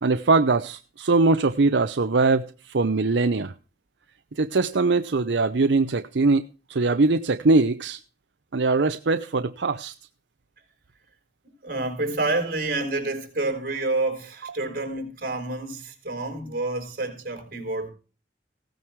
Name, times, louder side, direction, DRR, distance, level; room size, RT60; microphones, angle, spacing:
voice 1, 0.0-3.5 4.3-8.0 8.5-9.9, right 3 dB, 80° right, 0.7 m, -22 dB
voice 2, 11.6-17.9, right 2 dB, 50° right, 5.3 m, -28 dB
17.0 x 9.2 x 4.6 m
head